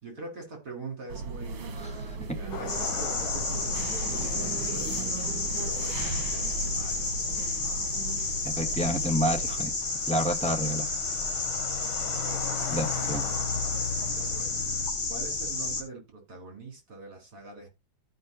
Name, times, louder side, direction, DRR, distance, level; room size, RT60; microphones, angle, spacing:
voice 1, 0.0-7.5 11.7-12.5 12.9-14.5 15.1-17.7, right 3 dB, 50° right, 5.0 m, -44 dB
sound 1, 1.1-9.7, right 3 dB, 75° right, 2.2 m, -36 dB
sound 2, 2.5-14.9, left 6 dB, 85° left, 2.0 m, -39 dB
sound 3, 2.7-15.8, left 3 dB, 60° left, 2.5 m, -31 dB
voice 2, 8.4-9.7 10.1-10.9 12.7-13.2, equal, 5° left, 1.0 m, -29 dB
14.5 x 5.6 x 2.8 m
omnidirectional pair, 2.2 m